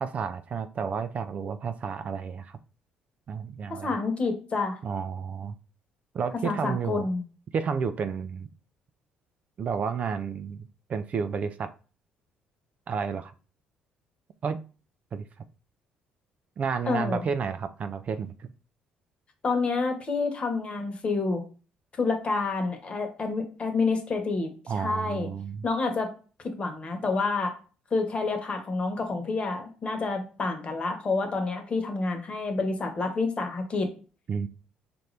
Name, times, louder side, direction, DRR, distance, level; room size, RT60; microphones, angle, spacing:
voice 1, 0.0-2.6 3.3-4.0 4.8-5.5 6.1-7.1 7.5-8.5 9.6-11.7 12.9-13.3 14.4-14.6 15.1-15.2 16.6-18.5 24.7-25.6 34.3-34.5, right 6 dB, 50° right, 12 dB, 0.4 m, -31 dB
voice 2, 3.7-4.8 6.4-7.2 16.8-17.2 19.4-21.4 22.0-25.3 25.6-26.1 26.4-27.5 27.9-33.9, left 3 dB, 40° left, 5 dB, 1.1 m, -28 dB
4.4 x 2.6 x 3.2 m, 0.37 s
supercardioid pair, 75°, 3 cm